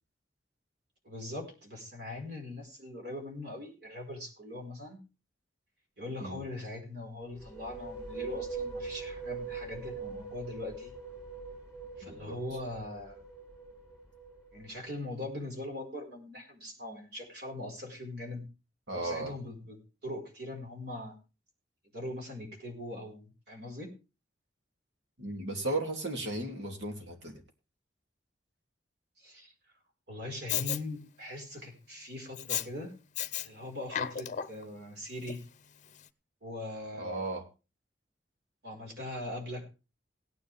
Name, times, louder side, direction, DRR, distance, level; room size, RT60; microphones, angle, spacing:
voice 1, 1.0-5.0 6.0-10.9 12.0-13.2 14.5-18.5 18.9-21.2 21.9-23.9 29.2-29.5 30.1-32.9 33.4-35.4 36.4-37.2 38.6-39.7, left 1 dB, 65° right, 2 dB, 5.0 m, -41 dB
sound 1, 7.2-14.9, right 4 dB, 5° right, 3.1 m, -42 dB
voice 2, 12.0-12.4 18.9-19.3 25.2-27.4 37.0-37.4, right 2 dB, 85° right, 3 dB, 2.8 m, -35 dB
Respiratory sounds, 30.5-30.8 32.4-32.7 33.1-33.5 33.8-34.6 35.3-35.4, left 10 dB, 45° left, 0.7 m, -33 dB
17.5 x 10.0 x 3.5 m, 0.31 s
head